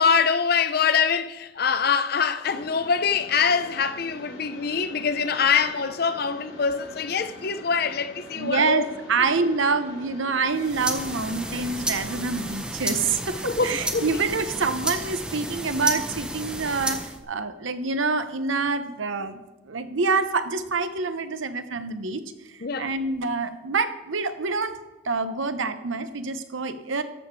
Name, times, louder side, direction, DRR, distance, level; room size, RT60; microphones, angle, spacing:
voice 1, 0.0-8.8 13.4-14.2 22.6-22.9, left 6 dB, 50° left, 0.5 m, -24 dB
Mechanisms, 2.4-12.4, left 1 dB, 80° left, 3.7 m, -44 dB
voice 2, 8.4-22.2 22.5-24.8 25.0-27.0, right 4 dB, 75° right, 0.8 m, -26 dB
sound 1, 10.5-17.2, right 1 dB, 5° right, 0.7 m, -32 dB
13.0 x 6.9 x 4.6 m
head